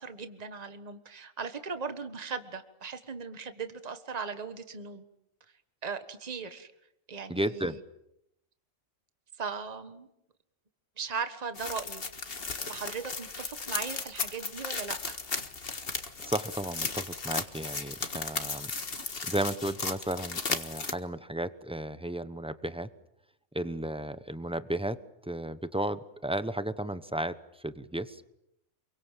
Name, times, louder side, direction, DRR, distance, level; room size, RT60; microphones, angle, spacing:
voice 1, 0.0-5.0 5.8-6.7 7.1-7.8 9.4-10.1 11.0-15.2, right 5 dB, 30° right, 9 dB, 1.5 m, -38 dB
voice 2, 7.3-7.8 16.2-18.7 19.2-22.9 23.5-25.0 25.2-28.2, right 1 dB, 5° right, 12 dB, 0.8 m, -34 dB
sound 1, 11.6-20.9, left 4 dB, 45° left, 1.8 m, -35 dB
28.0 x 23.5 x 7.5 m, 0.81 s
omnidirectional pair, 1.4 m